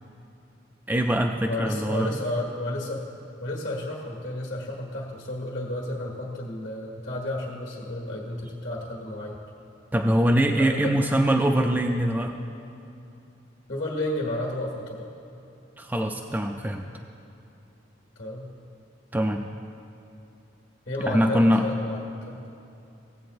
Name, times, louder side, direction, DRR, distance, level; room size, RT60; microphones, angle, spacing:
voice 1, 0.9-2.1 8.5-8.6 9.9-12.4 15.8-16.9 19.1-19.4 21.1-21.6, equal, 10° right, 2 dB, 0.3 m, -23 dB
voice 2, 1.5-3.0 3.4-9.4 10.6-11.0 13.7-15.0 18.1-18.5 20.9-22.5, left 1 dB, 70° left, -3 dB, 1.5 m, -32 dB
16.0 x 8.0 x 2.6 m, 2.7 s
head